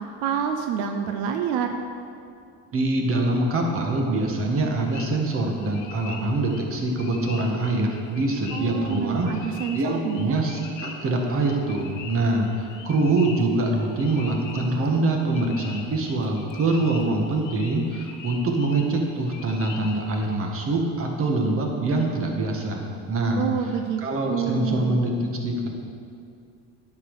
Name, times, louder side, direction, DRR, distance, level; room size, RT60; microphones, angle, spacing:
voice 1, 0.0-1.8 8.5-10.4 23.4-24.0 24.3-25.0, right 7 dB, 90° right, 5 dB, 0.8 m, -27 dB
voice 2, 2.7-23.5 24.0-25.7, right 2 dB, 40° right, 1 dB, 1.7 m, -24 dB
sound 1, 4.7-20.3, left 5 dB, 65° left, 1.1 m, -43 dB
10.0 x 6.1 x 6.5 m, 2.4 s
cardioid pair, 120°, 33 cm